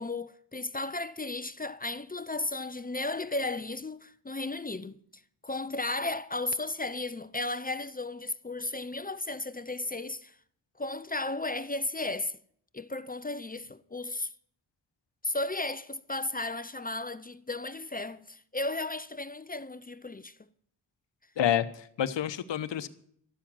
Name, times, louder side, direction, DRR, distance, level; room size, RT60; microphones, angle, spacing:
voice 1, 0.0-10.4 10.8-12.4 12.7-14.3 15.2-20.4, left 2 dB, 20° left, 0.6 m, -34 dB
voice 2, 21.4-22.9, left 10 dB, 85° left, 0.9 m, -28 dB
12.5 x 7.4 x 8.8 m
cardioid pair, 55°, 42 cm